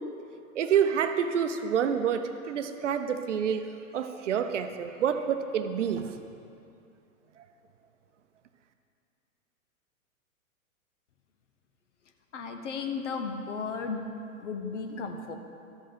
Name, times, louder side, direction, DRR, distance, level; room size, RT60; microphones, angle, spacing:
voice 1, 0.5-3.6 3.9-6.2, right 8 dB, 60° right, 8 dB, 0.7 m, -28 dB
voice 2, 12.3-14.1 14.4-15.4, left 5 dB, 55° left, 5 dB, 1.1 m, -34 dB
13.0 x 5.5 x 5.1 m, 2.6 s
figure-of-eight pair, 110°, 42 cm